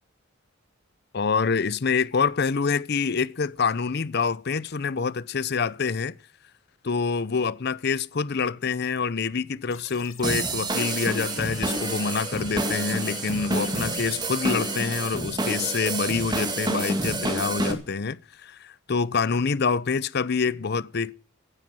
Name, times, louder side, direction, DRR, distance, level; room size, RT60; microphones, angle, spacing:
voice 1, 1.1-6.1 6.8-21.1, left 5 dB, 50° left, 0.6 m, -26 dB
sound 1, 9.7-15.2, left 6 dB, 85° left, 2.2 m, -44 dB
sound 2, 10.2-17.7, right 2 dB, 20° right, 2.4 m, -28 dB
16.5 x 9.8 x 6.2 m
head